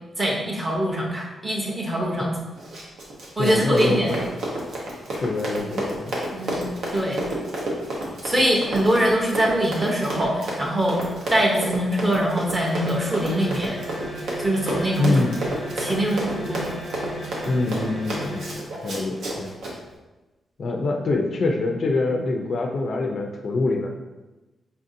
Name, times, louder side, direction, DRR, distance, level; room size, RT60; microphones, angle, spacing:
voice 1, 0.2-2.3 3.4-4.1 6.3-6.6 6.9-7.3 8.2-11.0 11.3-13.8 14.4-15.1 15.8-16.6, right 1 dB, 20° right, -2 dB, 0.7 m, -23 dB
Run, 2.6-19.7, right 1 dB, 90° right, 0.9 m, -31 dB
voice 2, 3.4-4.2 5.1-6.2 15.0-15.4 17.5-18.5 18.8-19.5 20.6-23.9, left 2 dB, 45° left, 2 dB, 0.3 m, -25 dB
sound 1, 12.7-18.7, equal, 55° right, 1.0 m, -35 dB
5.4 x 2.6 x 2.6 m, 1.1 s
wide cardioid pair, 180°, 0 cm